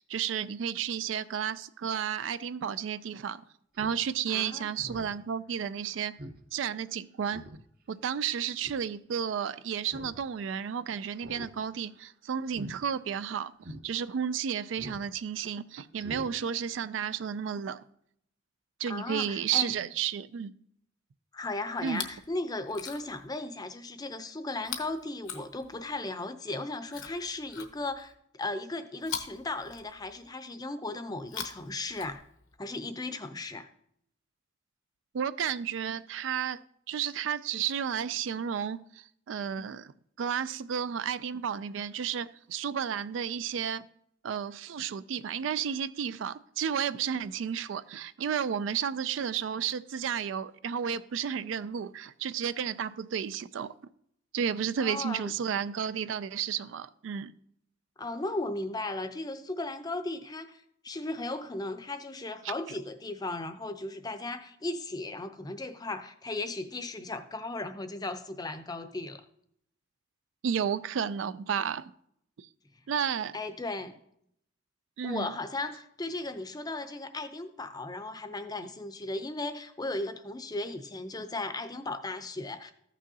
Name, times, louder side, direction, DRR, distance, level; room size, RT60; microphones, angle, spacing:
voice 1, 0.0-3.4 3.8-6.2 6.5-7.4 7.9-13.5 13.8-17.8 18.8-20.5 21.8-22.1 35.1-36.6 36.9-39.9 40.2-43.8 44.2-53.7 54.3-57.3 70.4-71.9 72.4-72.5 72.9-73.4 75.0-75.3, right 8 dB, 75° right, 0.3 m, -32 dB
Speech synthesizer, 3.7-4.0 4.4-4.5 4.8-5.1 5.5-5.6 6.2-6.4 6.7-6.8 7.3-7.6 8.6-8.9 9.8-10.2 10.5-10.6 11.2-11.5 11.8-12.0 12.5-12.7 13.2-13.3 13.6-13.8 14.8-15.1 15.4-15.5 15.9-16.3 16.6-16.7, equal, 50° right, 0.8 m, -44 dB
voice 2, 4.3-4.8 18.9-19.7 21.3-32.2 32.6-33.7 54.8-55.4 58.0-69.2 73.3-74.0 75.0-82.7, left 2 dB, 20° left, 0.5 m, -36 dB
Chewing mastication, 21.8-22.3 22.6-23.3 24.6-26.0 26.9-28.1 29.0-30.3 31.2-32.6 33.5-33.6, left 7 dB, 80° left, 0.9 m, -42 dB
14.5 x 6.1 x 2.7 m
head